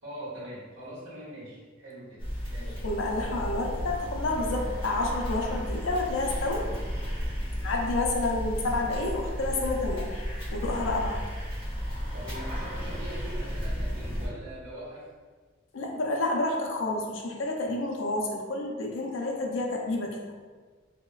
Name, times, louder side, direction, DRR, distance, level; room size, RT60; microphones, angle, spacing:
voice 1, 0.0-2.2 2.5-2.8 12.1-15.1, right 1 dB, 80° right, -8 dB, 0.8 m, -42 dB
sound 1, 2.2-14.3, equal, 25° right, 1.1 m, -33 dB
voice 2, 2.8-6.7 7.0-7.1 7.6-10.2 10.5-11.2 15.7-20.2, left 2 dB, 70° left, 0 dB, 0.4 m, -29 dB
3.0 x 2.1 x 2.3 m, 1.4 s
head